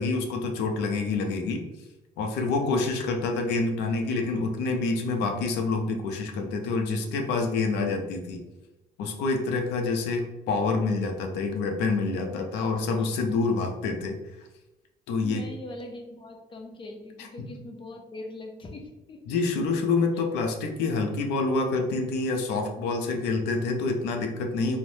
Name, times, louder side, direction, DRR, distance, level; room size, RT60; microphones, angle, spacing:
voice 1, 0.0-1.6 2.2-8.4 9.0-14.2 15.1-15.5 19.3-24.8, left 3 dB, 85° left, 3 dB, 0.5 m, -27 dB
voice 2, 2.6-2.9 13.0-13.5 15.2-19.4, left 2 dB, 30° left, 3 dB, 0.5 m, -41 dB
3.2 x 2.0 x 2.6 m, 1.0 s
cardioid pair, 110°, 17 cm